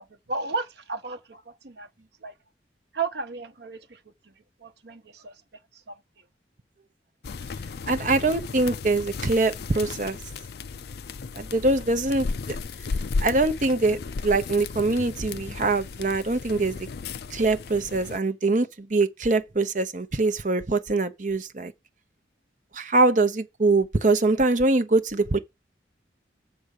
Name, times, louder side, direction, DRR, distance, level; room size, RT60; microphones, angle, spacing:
voice 1, 0.0-2.3 2.9-4.3 4.6-5.4 5.7-6.0, right 4 dB, 70° right, 1.0 m, -34 dB
sound 1, 7.2-18.2, left 4 dB, 60° left, 0.4 m, -34 dB
voice 2, 7.9-10.2 11.4-12.6 13.2-16.9 17.3-21.7 22.7-25.4, right 3 dB, 45° right, 0.8 m, -23 dB
7.0 x 5.0 x 6.6 m
head